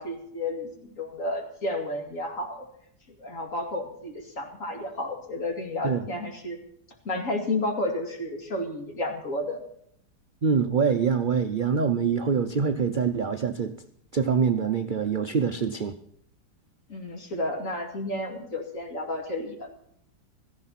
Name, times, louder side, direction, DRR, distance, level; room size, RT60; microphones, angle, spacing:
voice 1, 0.0-2.7 3.2-6.6 7.0-9.6 16.9-19.7, left 1 dB, 50° left, 3 dB, 2.7 m, -31 dB
voice 2, 10.4-13.7 14.1-15.9, right 6 dB, 60° right, 8 dB, 0.5 m, -25 dB
16.5 x 14.5 x 4.2 m, 0.70 s
omnidirectional pair, 1.8 m